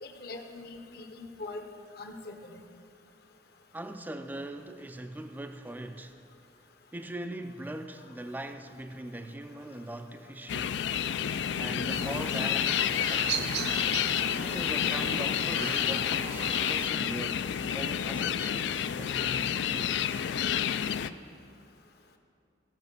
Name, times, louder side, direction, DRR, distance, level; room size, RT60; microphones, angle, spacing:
voice 1, 0.0-1.6 2.0-2.6, left 2 dB, 55° left, 1.0 m, -42 dB
voice 2, 3.7-6.2 6.9-10.8 11.5-14.1 14.4-17.4 17.7-20.2, right 1 dB, 10° right, 0.3 m, -41 dB
sound 1, 10.5-21.1, left 9 dB, 70° left, 0.3 m, -29 dB
sound 2, 11.9-16.9, right 6 dB, 60° right, 0.7 m, -38 dB
16.5 x 5.9 x 6.8 m
head